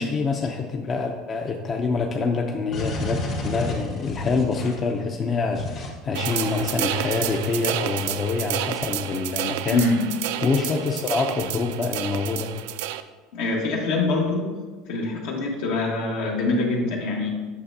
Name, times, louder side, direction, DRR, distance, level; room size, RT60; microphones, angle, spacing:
voice 1, 0.0-9.9 10.4-12.5, left 4 dB, 30° left, 3 dB, 0.5 m, -26 dB
sound 1, 2.7-4.9 5.5-5.9 6.2-8.1, left 2 dB, 50° left, 1.5 m, -33 dB
sound 2, 6.1-13.0, right 13 dB, 85° right, 0.3 m, -30 dB
voice 2, 9.7-10.1 13.3-14.6 14.9-17.3, left 2 dB, 75° left, 0 dB, 1.4 m, -24 dB
8.3 x 5.9 x 2.7 m, 1.4 s
supercardioid pair, 125°, 0 cm